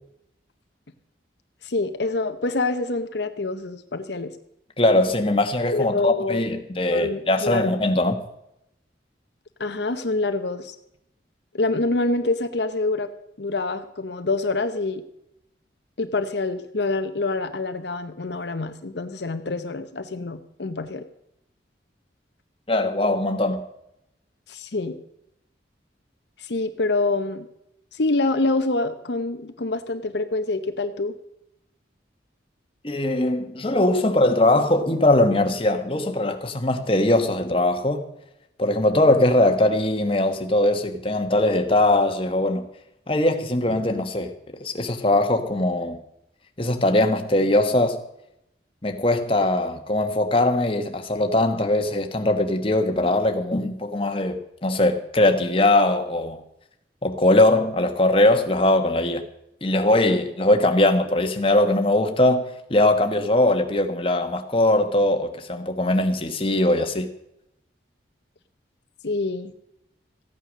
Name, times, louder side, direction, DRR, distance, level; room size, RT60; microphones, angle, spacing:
voice 1, 1.6-4.3 5.7-6.4 6.9-7.8 9.6-10.7 11.5-13.1 13.4-15.0 16.0-21.0 24.5-25.0 26.4-27.5 27.9-31.1 69.0-69.5, left 2 dB, 65° left, 0.8 m, -26 dB
voice 2, 4.8-8.2 22.7-23.6 32.8-38.1 38.6-42.6 43.1-46.0 46.6-48.0 48.8-56.4 57.0-59.2 59.6-62.4 62.7-67.1, left 1 dB, 30° left, 1.2 m, -21 dB
15.0 x 9.2 x 6.3 m
head